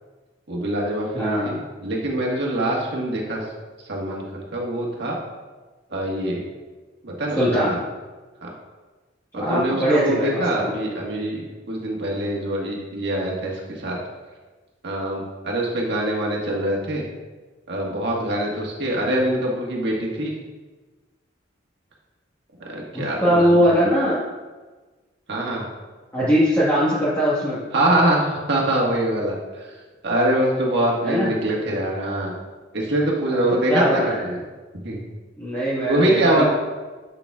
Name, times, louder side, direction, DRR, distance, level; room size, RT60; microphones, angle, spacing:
voice 1, 0.5-3.4 3.9-5.2 5.9-6.4 7.0-7.8 8.4-8.5 9.3-14.0 14.8-17.1 17.7-20.3 22.6-23.8 25.3-25.7 27.7-29.7 30.0-32.3 32.7-34.4 34.7-35.0 35.8-36.5, right 1 dB, 60° right, -2 dB, 1.5 m, -24 dB
voice 2, 1.1-1.5 7.4-7.7 9.3-10.7 22.9-24.2 26.1-27.6 31.0-31.3 33.3-33.4 33.7-34.2 35.4-36.5, equal, 15° left, -11 dB, 1.4 m, -21 dB
8.0 x 6.9 x 2.4 m, 1.3 s
head